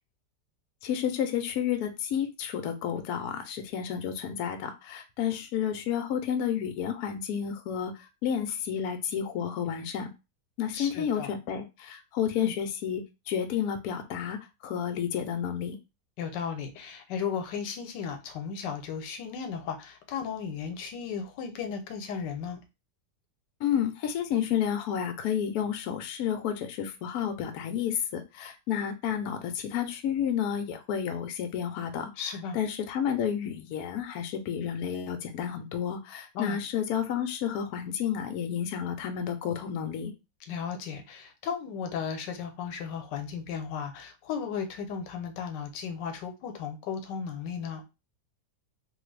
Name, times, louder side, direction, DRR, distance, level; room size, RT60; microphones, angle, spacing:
voice 1, 0.8-10.1 10.6-14.4 14.6-15.8 23.6-32.1 32.5-40.1, left 8 dB, 70° left, 1.0 m, -31 dB
voice 2, 10.7-11.3 12.4-12.5 16.2-22.6 32.2-32.6 36.3-36.6 40.5-47.8, left 6 dB, 85° left, 1.3 m, -35 dB
3.1 x 2.3 x 3.2 m
omnidirectional pair, 1.9 m